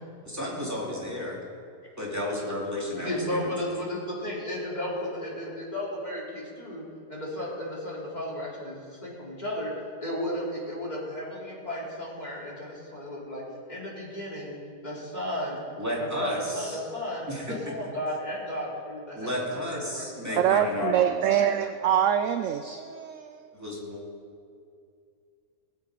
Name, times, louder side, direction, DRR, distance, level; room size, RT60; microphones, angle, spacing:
voice 1, 0.2-1.4 2.0-3.4 15.8-16.8 17.3-17.7 19.1-21.2 23.5-24.0, left 1 dB, 10° right, -5 dB, 2.8 m, -33 dB
voice 2, 3.0-9.7 10.0-13.4 13.7-15.6 16.0-21.1, left 1 dB, 25° left, -5 dB, 3.2 m, -34 dB
voice 3, 20.4-23.5, right 9 dB, 70° right, 9 dB, 0.7 m, -25 dB
19.0 x 8.4 x 5.0 m, 2.4 s
omnidirectional pair, 1.7 m